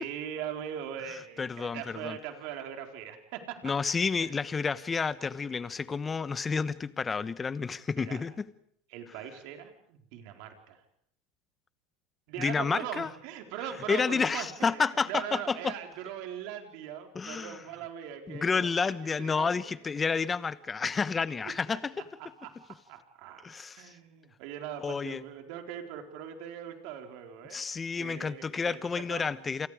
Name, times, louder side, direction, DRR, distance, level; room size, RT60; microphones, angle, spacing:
voice 1, 0.0-3.9 4.2-4.3 8.0-8.2 8.9-10.8 12.3-19.6 21.4-21.8 22.2-22.6 22.9-23.4 23.8-27.7 28.0-29.3, right 9 dB, 65° right, 4.2 m, -41 dB
voice 2, 1.4-2.2 3.6-8.4 12.4-13.1 13.9-15.7 17.1-17.6 18.3-21.9 23.4-23.9 24.8-25.2 27.5-29.7, left 5 dB, 20° left, 1.1 m, -30 dB
28.5 x 28.5 x 5.0 m
supercardioid pair, 120°, 0 cm